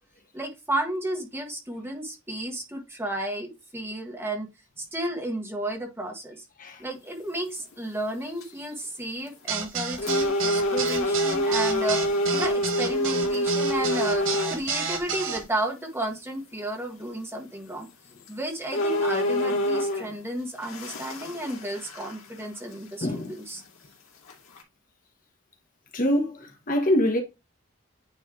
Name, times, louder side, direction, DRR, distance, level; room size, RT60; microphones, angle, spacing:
voice 1, 0.3-4.5 4.8-6.4 6.8-12.0 12.3-17.9 18.3-23.6, right 1 dB, 10° right, 1.6 m, -32 dB
sound 1, 7.6-7.7 8.2-8.6 9.3-9.4 10.0-14.6 15.3-15.4 17.7-17.8 18.3-18.4 18.7-20.2 20.6-22.4 22.7-22.8 23.5-23.6 24.3-24.6, equal, 85° left, 2.3 m, -26 dB
sound 2, 9.5-15.4, right 5 dB, 65° right, 1.6 m, -30 dB
voice 2, 23.0-23.3 25.9-27.2, left 1 dB, 40° left, 1.2 m, -24 dB
9.2 x 3.3 x 3.8 m
head